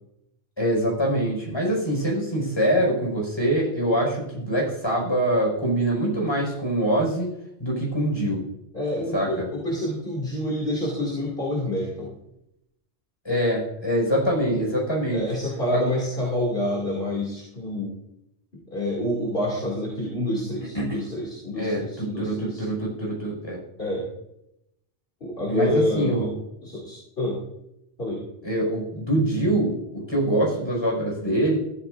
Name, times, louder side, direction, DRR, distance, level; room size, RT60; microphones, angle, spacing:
voice 1, 0.6-7.3 7.6-8.4 9.1-9.4 13.2-15.2 15.7-15.9 20.7-21.0 21.6-23.6 25.5-26.3 28.4-31.6, right 1 dB, 20° left, -3 dB, 5.1 m, -24 dB
voice 2, 8.7-12.2 15.1-17.9 18.7-22.6 23.8-24.1 25.2-26.3 26.6-27.4 28.0-28.2, left 1 dB, 50° left, -3 dB, 2.7 m, -27 dB
14.5 x 13.0 x 2.6 m, 0.82 s
omnidirectional pair, 1.2 m